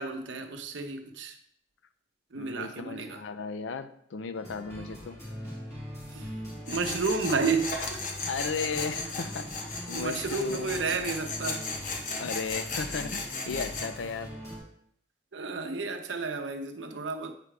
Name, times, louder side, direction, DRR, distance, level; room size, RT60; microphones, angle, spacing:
voice 1, 0.0-1.4 2.3-3.2 6.1-6.3 6.7-8.0 9.9-11.7 15.3-17.3, right 4 dB, 85° right, 0.7 m, -32 dB
voice 2, 2.3-5.2 8.3-9.5 9.9-11.0 12.2-14.3, left 5 dB, 90° left, 0.5 m, -35 dB
sound 1, 4.3-14.6, equal, 15° left, 2.4 m, -42 dB
Tools, 6.7-13.9, left 3 dB, 45° left, 0.8 m, -36 dB
8.3 x 4.8 x 3.3 m
head